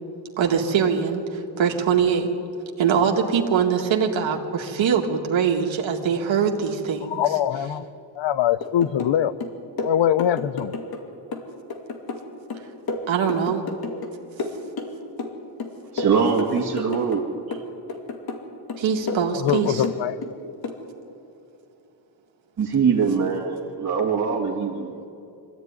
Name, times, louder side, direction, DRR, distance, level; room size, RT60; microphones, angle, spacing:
voice 1, 0.4-2.3 2.8-7.2 13.1-13.6 18.8-19.8, right 7 dB, 85° right, 1 dB, 2.0 m, -22 dB
voice 2, 7.1-7.9 8.2-9.4 9.8-10.8 19.3-20.2, left 10 dB, 75° left, 15 dB, 0.8 m, -23 dB
sound 1, 8.6-9.2 9.4-11.0 11.3-14.1 14.4-15.3 15.6-17.2 17.5-18.4 18.7-20.3 20.6-20.8, left 3 dB, 55° left, 2.5 m, -31 dB
voice 3, 15.9-17.2 22.6-25.0, right 6 dB, 40° right, -4 dB, 2.0 m, -22 dB
24.5 x 14.5 x 9.6 m, 2.7 s
wide cardioid pair, 160°, 45 cm